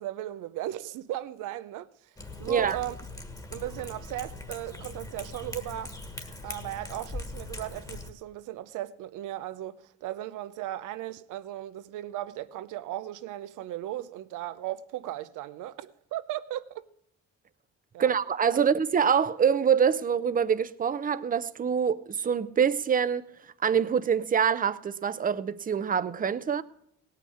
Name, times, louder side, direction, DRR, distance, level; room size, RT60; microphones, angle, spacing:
voice 1, 0.0-1.9 2.4-2.9 3.5-5.9 6.4-16.8 17.9-18.1 18.5-18.6, right 13 dB, 90° right, 0.7 m, -36 dB
Cat, 2.2-8.1, left 2 dB, 10° left, 1.4 m, -41 dB
voice 2, 18.0-23.3 23.6-26.6, right 7 dB, 30° right, 0.6 m, -25 dB
17.0 x 5.8 x 8.5 m
cardioid pair, 90°, 30 cm